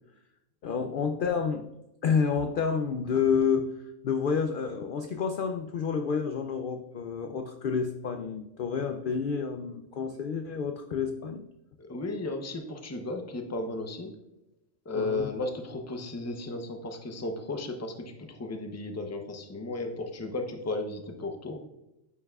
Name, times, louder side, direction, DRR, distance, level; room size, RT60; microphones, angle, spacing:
voice 1, 0.6-1.6 2.0-11.4 14.9-15.3, left 6 dB, 60° left, 6 dB, 0.5 m, -29 dB
voice 2, 11.8-14.1 14.8-21.6, left 2 dB, 15° left, 4 dB, 0.5 m, -34 dB
9.4 x 5.6 x 2.3 m, 0.91 s
omnidirectional pair, 1.3 m